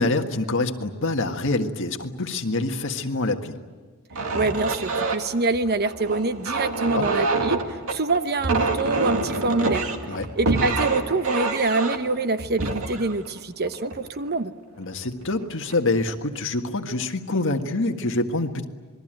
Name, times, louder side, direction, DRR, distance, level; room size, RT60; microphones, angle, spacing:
voice 1, 0.0-3.5 6.9-7.1 10.1-10.3 14.8-18.6, left 2 dB, 60° left, 5 dB, 1.8 m, -26 dB
sound 1, 4.1-14.4 15.0-15.3 15.7-16.2, right 3 dB, 70° right, 2.3 m, -27 dB
voice 2, 4.3-7.6 7.9-9.9 10.4-14.5, right 3 dB, 45° right, 10 dB, 1.0 m, -25 dB
27.0 x 21.5 x 9.1 m, 1.4 s
head